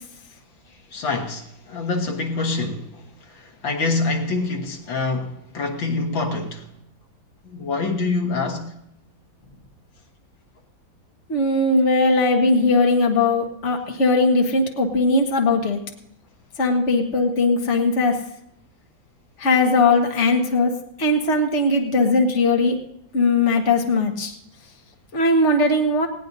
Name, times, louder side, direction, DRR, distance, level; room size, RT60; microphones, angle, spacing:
voice 1, 0.9-6.7 7.5-8.7, left 3 dB, 75° left, 2.2 m, -26 dB
voice 2, 11.3-15.8 16.6-18.1 19.4-20.7 21.0-22.7 23.1-24.3 25.1-26.1, left 2 dB, 40° left, 1.8 m, -19 dB
19.5 x 17.0 x 2.7 m
omnidirectional pair, 2.1 m